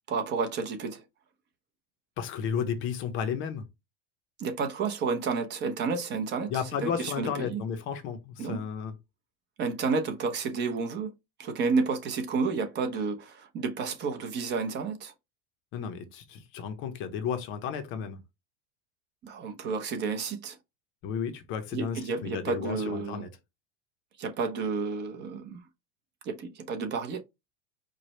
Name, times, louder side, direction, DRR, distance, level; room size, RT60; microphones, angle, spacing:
voice 1, 0.1-1.0 4.4-6.5 6.8-7.6 8.4-8.6 9.6-11.1 11.4-15.1 19.2-20.6 21.7-23.2 24.2-25.6 26.2-27.2, right 4 dB, 30° right, 0.9 m, -31 dB
voice 2, 2.2-3.6 6.5-8.9 15.7-18.2 21.0-23.3, left 7 dB, 35° left, 0.7 m, -33 dB
4.9 x 2.3 x 4.3 m
supercardioid pair, 155°, 34 cm